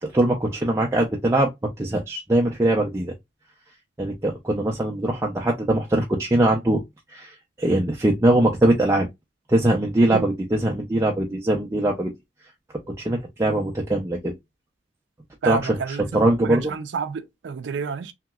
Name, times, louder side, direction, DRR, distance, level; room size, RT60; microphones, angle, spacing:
voice 1, 0.0-1.5 1.8-3.1 4.0-6.8 7.1-9.1 9.5-12.1 12.9-14.3 15.5-16.7, right 1 dB, 15° right, 0.4 m, -22 dB
voice 2, 15.4-18.1, right 5 dB, 85° right, 0.4 m, -30 dB
3.0 x 2.8 x 2.2 m
head